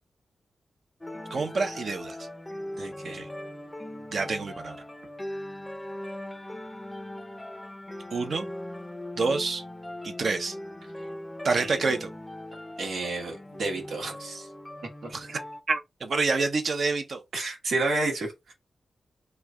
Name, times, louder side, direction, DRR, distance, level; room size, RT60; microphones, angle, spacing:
sound 1, 1.0-15.6, left 1 dB, 15° left, 0.5 m, -40 dB
voice 1, 1.3-2.3 3.1-3.3 4.1-4.8 8.1-8.5 9.2-9.6 10.0-10.5 11.4-12.1 15.1-15.4 15.7-17.2, right 4 dB, 65° right, 0.7 m, -27 dB
voice 2, 2.8-3.2 11.6-11.8 12.8-14.5 15.0-15.1 17.3-18.5, right 2 dB, 85° right, 1.2 m, -31 dB
3.1 x 2.3 x 3.6 m
cardioid pair, 70°, 0 cm